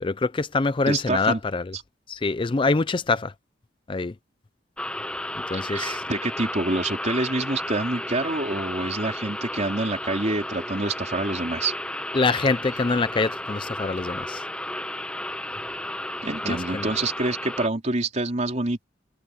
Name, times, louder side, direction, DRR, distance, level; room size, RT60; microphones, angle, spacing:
voice 1, 0.0-1.7 2.1-3.3 3.9-4.1 5.5-6.0 12.1-14.4 16.4-16.9, left 3 dB, 30° left, 0.5 m, -25 dB
voice 2, 0.9-1.4 5.5-11.7 16.2-18.9, right 2 dB, 40° right, 3.9 m, -27 dB
sound 1, 4.8-17.7, left 1 dB, 5° left, 1.1 m, -33 dB
head